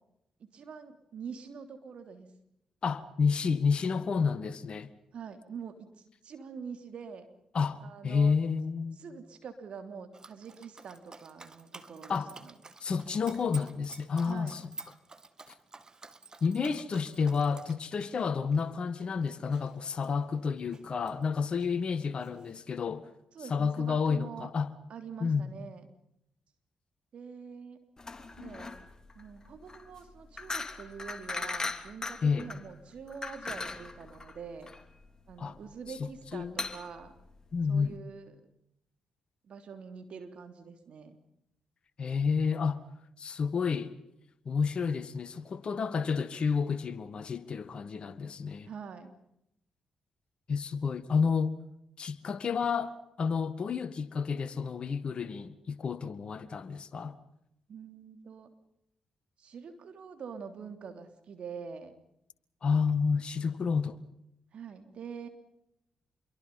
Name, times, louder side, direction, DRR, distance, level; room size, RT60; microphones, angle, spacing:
voice 1, 0.5-2.3 5.1-5.9 6.2-7.3 7.8-8.3 8.9-12.5 14.2-14.6 23.3-24.5 24.9-25.9 27.1-27.8 28.4-28.7 29.1-34.7 35.3-37.1 37.7-38.4 39.4-41.2 48.7-49.1 57.7-58.5 59.4-61.9 64.5-65.3, right 6 dB, 65° right, 3.3 m, -45 dB
voice 2, 2.8-4.9 7.5-7.8 8.0-9.0 12.1-12.3 12.8-14.6 16.4-23.1 23.5-24.7 25.2-25.4 32.2-32.5 35.4-35.6 36.0-36.6 37.5-38.0 42.0-42.8 43.2-43.9 44.4-48.7 50.5-51.5 52.0-57.1 62.6-64.0, left 5 dB, 55° left, 1.8 m, -30 dB
Dog, 10.1-21.2 21.5-22.6, right 3 dB, 35° right, 1.9 m, -51 dB
sound 1, 28.0-38.0, left 3 dB, 30° left, 2.9 m, -39 dB
27.0 x 23.0 x 5.5 m
hypercardioid pair, 45°, 2 cm